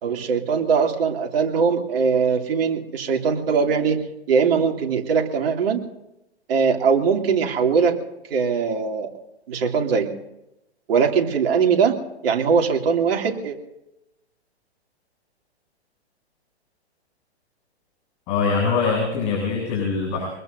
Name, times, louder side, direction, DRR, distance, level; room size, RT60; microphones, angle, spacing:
voice 1, 0.0-4.0 4.3-5.8 6.5-8.0 8.3-9.1 9.5-10.1 10.9-12.0 12.2-13.6, right 6 dB, 60° right, 2 dB, 2.7 m, -21 dB
voice 2, 18.3-20.3, left 5 dB, 40° left, -3 dB, 7.3 m, -23 dB
25.0 x 21.0 x 2.6 m, 0.88 s
hypercardioid pair, 125°, 33 cm